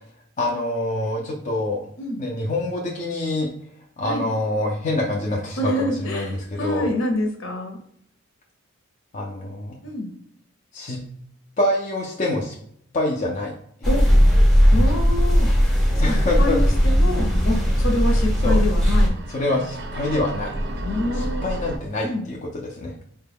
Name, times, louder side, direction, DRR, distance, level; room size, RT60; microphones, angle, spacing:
voice 1, 0.4-1.8 2.2-3.5 4.0-6.9 9.1-9.8 10.7-11.0 11.6-12.5 12.9-13.5 16.0-16.6 18.4-18.6 19.3-20.5 21.1-22.9, left 2 dB, 35° left, -2 dB, 0.4 m, -25 dB
voice 2, 5.6-7.8 9.8-10.1 13.9-14.0 14.7-15.5 16.1-19.1 20.8-21.5 22.0-22.2, left 1 dB, 65° left, 2 dB, 0.8 m, -26 dB
sound 1, 13.8-19.1, equal, ahead, 0.6 m, -17 dB
sound 2, 14.6-21.8, right 1 dB, 50° right, 0.4 m, -34 dB
4.1 x 2.2 x 3.4 m, 0.68 s
head